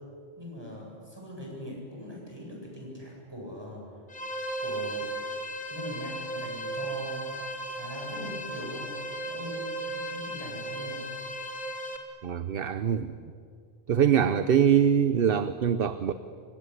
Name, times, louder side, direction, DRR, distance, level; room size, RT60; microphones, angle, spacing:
voice 1, 0.4-3.9 4.6-5.1 5.7-7.5 7.7-8.9 9.2-11.1, equal, 20° right, -2 dB, 8.2 m, -41 dB
sound 1, 4.1-12.0, right 1 dB, 45° left, 2.8 m, -35 dB
voice 2, 12.2-13.2 13.9-16.1, right 8 dB, 60° right, 12 dB, 1.0 m, -23 dB
25.0 x 23.5 x 9.9 m, 2.2 s
omnidirectional pair, 1.1 m